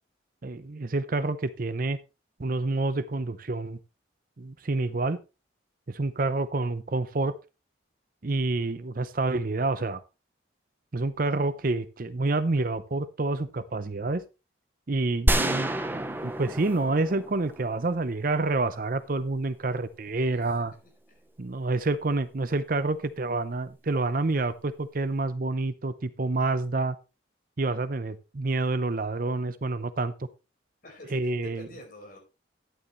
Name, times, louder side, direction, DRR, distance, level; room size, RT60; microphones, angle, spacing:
voice 1, 0.4-2.0 2.4-3.8 4.4-5.2 5.9-7.3 8.2-10.0 10.9-14.2 14.9-20.7 21.4-27.0 27.6-30.3 31.1-31.7, right 2 dB, 45° right, 14 dB, 0.6 m, -28 dB
sound 1, 15.3-18.2, right 1 dB, 10° right, 0.7 m, -28 dB
voice 2, 20.1-20.6 30.8-32.2, left 1 dB, 50° left, 0 dB, 4.8 m, -47 dB
11.5 x 9.3 x 3.1 m, 0.28 s
head